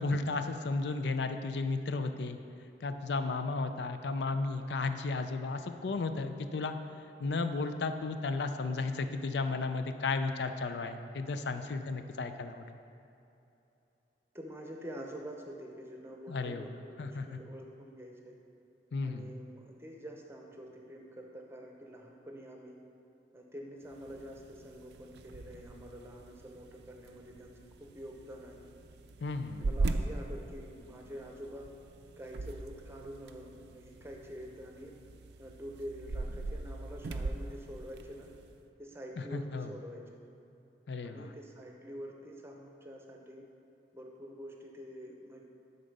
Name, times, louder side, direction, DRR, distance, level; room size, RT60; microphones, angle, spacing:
voice 1, 0.0-2.4 2.8-6.8 7.2-12.7 16.3-16.7 17.0-17.4 18.9-19.3 29.2-29.7 39.2-39.7 40.9-41.3, left 3 dB, 75° left, 8 dB, 0.4 m, -34 dB
voice 2, 14.3-18.3 19.0-22.8 23.3-28.7 29.6-31.7 32.2-34.9 35.4-38.3 38.8-40.1 41.0-43.5 43.9-45.4, equal, 15° right, 1 dB, 0.7 m, -47 dB
sound 1, 23.8-38.6, right 2 dB, 75° right, 0.4 m, -41 dB
11.0 x 4.0 x 5.3 m, 2.8 s
head